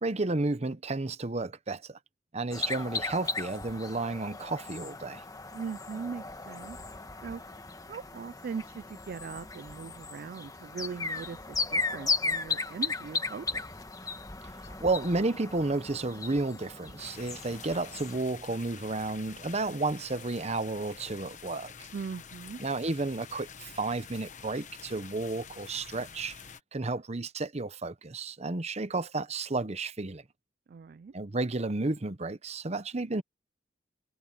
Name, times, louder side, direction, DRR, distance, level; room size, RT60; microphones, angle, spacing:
voice 1, 0.0-2.0 2.3-5.2 14.8-21.9 22.6-26.4 26.7-30.2 31.1-33.2, right 2 dB, 35° right, 0.9 m, -32 dB
sound 1, 2.5-18.2, left 4 dB, 20° left, 1.3 m, -36 dB
voice 2, 5.5-6.8 7.2-7.4 7.9-13.6 21.9-22.6 30.7-31.1, right 5 dB, 50° right, 0.3 m, -40 dB
sound 2, 17.0-26.6, left 6 dB, 40° left, 1.2 m, -48 dB
head